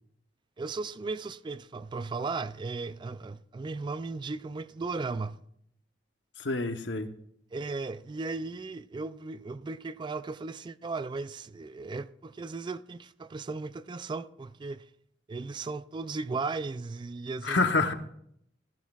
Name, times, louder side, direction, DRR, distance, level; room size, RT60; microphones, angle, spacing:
voice 1, 0.6-5.4 7.5-14.9 15.3-17.6, right 3 dB, 25° right, 0.3 m, -36 dB
voice 2, 6.4-7.1 17.4-17.9, left 3 dB, 65° left, 1.0 m, -27 dB
15.0 x 13.5 x 2.4 m
head